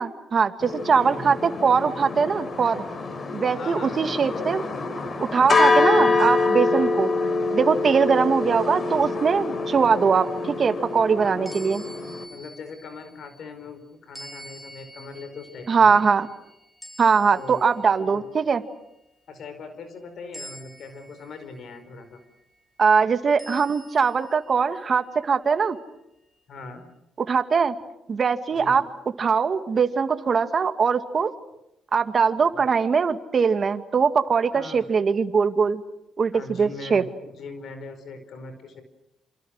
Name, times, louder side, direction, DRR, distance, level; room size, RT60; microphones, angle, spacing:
voice 1, 0.0-2.8 3.3-4.6 5.2-11.8 15.7-16.3 17.0-18.6 22.8-25.8 27.3-27.7 28.1-28.8 29.2-31.3 31.9-35.8 36.2-37.0, right 5 dB, 45° right, 9 dB, 2.1 m, -21 dB
sound 1, 0.6-12.2, left 3 dB, 40° left, 3.7 m, -25 dB
voice 2, 0.9-1.4 3.5-4.2 11.2-11.7 12.3-16.0 17.3-17.6 17.9-18.3 19.3-22.2 26.5-26.8 28.6-28.8 34.5-34.8 36.3-38.8, left 3 dB, 65° left, 9 dB, 4.8 m, -40 dB
sound 2, 10.2-13.7 14.1-18.1 18.6-18.9 20.3-22.4 23.4-25.4, equal, 5° left, 7.2 m, -47 dB
28.0 x 27.5 x 6.5 m, 0.86 s
cardioid pair, 90°, 0 cm